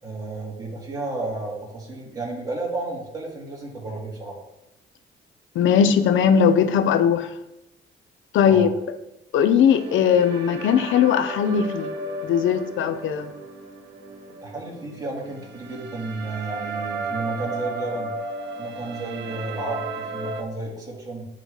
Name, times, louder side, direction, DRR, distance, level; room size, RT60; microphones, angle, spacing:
voice 1, 0.0-4.4 8.4-8.7 14.4-18.1 18.6-21.2, right 2 dB, 20° right, -3 dB, 2.7 m, -32 dB
voice 2, 5.5-7.3 8.3-8.7 9.3-11.9 12.2-13.3, left 8 dB, 80° left, 10 dB, 0.7 m, -19 dB
sound 1, 9.7-20.4, right 2 dB, 65° right, 1.1 m, -34 dB
10.0 x 3.9 x 3.3 m, 0.89 s
cardioid pair, 90°, 20 cm